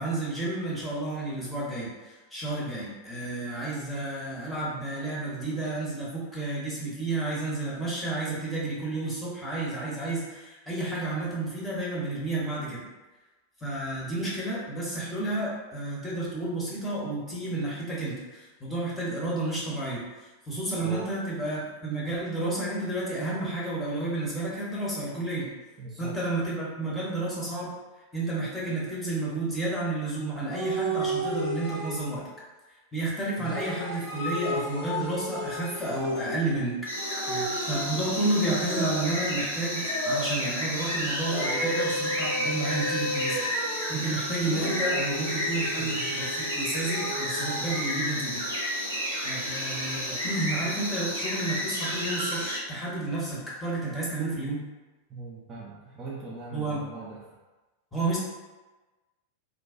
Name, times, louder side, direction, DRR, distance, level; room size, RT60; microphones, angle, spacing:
voice 1, 0.0-12.8 13.6-20.0 20.5-25.6 26.0-27.7 28.1-32.2 32.9-36.9 37.7-48.8 49.2-54.6 56.5-56.8 57.9-58.2, right 2 dB, 10° left, -7 dB, 0.8 m, -31 dB
voice 2, 25.8-26.2 33.4-33.6 37.3-37.6 43.9-44.0 45.8-46.2 55.1-57.2, right 3 dB, 25° right, -6 dB, 0.5 m, -40 dB
the whinger, 30.5-32.2 33.4-36.5 37.0-39.3 39.8-40.6 41.2-44.0 44.4-48.0, equal, 50° left, 1.0 m, -33 dB
sound 1, 36.9-52.6, equal, 90° left, 0.7 m, -31 dB
2.5 x 2.2 x 2.4 m, 1.2 s
figure-of-eight pair, 90°, 0 cm